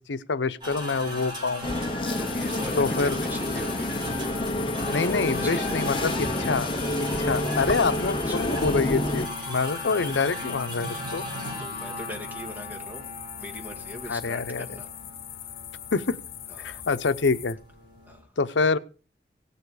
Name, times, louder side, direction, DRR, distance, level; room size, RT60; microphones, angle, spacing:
voice 1, 0.0-1.7 2.8-3.2 4.9-6.1 6.4-6.7 7.2-11.2 14.1-14.7 15.9-16.2 16.6-17.6 18.4-18.8, left 4 dB, 90° left, 14 dB, 0.7 m, -26 dB
sound 1, 0.6-18.2, left 1 dB, 25° right, 5.2 m, -37 dB
sound 2, 1.6-9.3, left 1 dB, 30° left, 0.8 m, -28 dB
sound 3, 2.0-17.5, left 11 dB, 55° left, 0.9 m, -41 dB
voice 2, 2.2-3.9 5.4-5.8 7.9-8.5 11.5-13.1 13.4-14.9 16.5-16.9 18.1-18.3, left 1 dB, 10° right, 2 dB, 2.0 m, -41 dB
17.5 x 7.0 x 4.8 m, 0.35 s
head